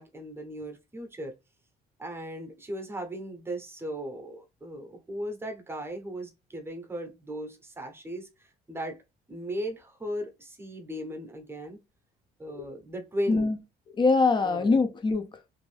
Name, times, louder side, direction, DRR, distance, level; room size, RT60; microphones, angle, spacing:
voice 1, 0.0-1.3 2.0-9.0 9.3-11.8 12.4-13.5 14.4-14.8, equal, 15° right, 0.8 m, -37 dB
voice 2, 13.3-13.6 14.0-15.4, left 3 dB, 30° left, 0.6 m, -24 dB
2.6 x 2.5 x 3.2 m
cardioid pair, 110°, 17 cm